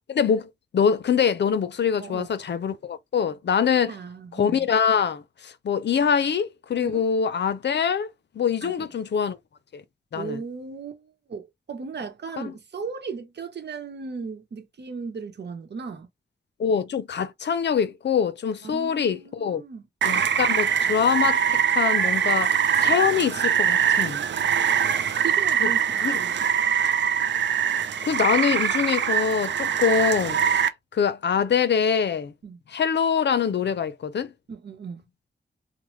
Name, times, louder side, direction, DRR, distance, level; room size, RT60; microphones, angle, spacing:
voice 1, 0.1-4.0 4.3-8.1 8.3-9.4 9.7-9.8 10.1-10.4 12.4-12.5 16.6-19.6 20.0-24.2 25.6-25.7 26.0-26.2 28.0-30.7 30.9-32.3 32.7-34.3, left 7 dB, 75° left, 0.5 m, -24 dB
voice 2, 3.9-4.7 6.8-7.1 8.6-8.9 10.1-16.1 18.6-19.8 24.0-25.8 26.1-26.7 32.4-32.6 34.5-35.0, right 5 dB, 70° right, 0.9 m, -37 dB
Rain, 20.0-30.7, right 8 dB, 85° right, 0.4 m, -23 dB
3.1 x 2.1 x 3.0 m
cardioid pair, 70°, 18 cm